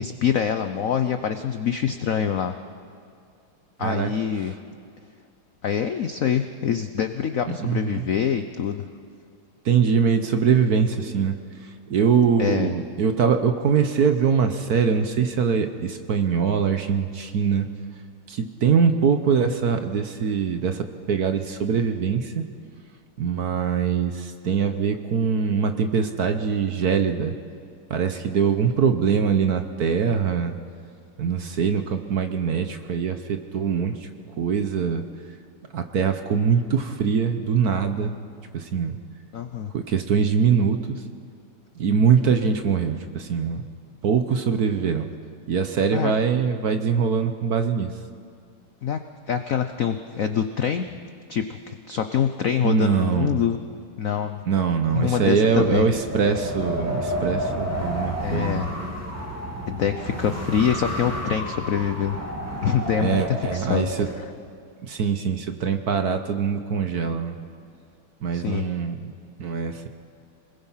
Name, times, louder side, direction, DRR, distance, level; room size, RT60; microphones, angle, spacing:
voice 1, 0.0-2.5 3.8-4.5 5.6-8.8 12.4-12.7 39.3-39.7 45.9-46.1 48.8-49.0 49.3-51.0 51.3-53.6 54.0-54.4 54.9-55.9 58.2-58.7 59.7-62.2 62.6-63.9 68.3-68.6, left 8 dB, 70° left, 8 dB, 0.7 m, -25 dB
voice 2, 3.8-4.1 7.5-8.0 9.6-11.4 11.6-17.7 18.3-22.4 23.2-27.3 27.9-30.5 31.2-34.1 34.4-35.0 35.7-38.1 38.5-39.0 39.7-41.0 41.8-43.6 44.0-45.1 45.5-47.9 52.6-53.4 54.5-58.7 63.0-64.1 64.8-67.4 68.2-69.0 69.4-69.9, right 6 dB, 55° right, 8 dB, 1.2 m, -23 dB
Wind, 55.5-64.2, equal, 5° right, 2.6 m, -30 dB
27.0 x 20.5 x 5.7 m, 2.3 s
omnidirectional pair, 2.4 m